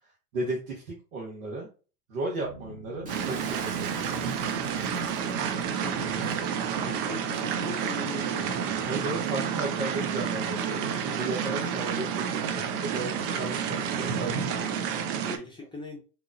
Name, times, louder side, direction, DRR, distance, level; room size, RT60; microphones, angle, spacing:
voice 1, 0.3-1.7 2.1-4.2 8.9-14.7, right 2 dB, 60° right, -3 dB, 1.4 m, -35 dB
sound 1, 2.4-13.1 13.4-13.7 14.1-14.2, equal, 85° right, 1.8 m, -48 dB
Shatter, 3.0-6.5, right 2 dB, 15° right, 1.3 m, -48 dB
sound 2, 3.1-15.4, right 7 dB, 35° right, 0.5 m, -30 dB
voice 2, 5.8-6.3 6.6-8.9 15.1-16.0, left 2 dB, 10° left, 1 dB, 0.9 m, -41 dB
3.7 x 3.0 x 2.6 m, 0.35 s
hypercardioid pair, 105°, 46 cm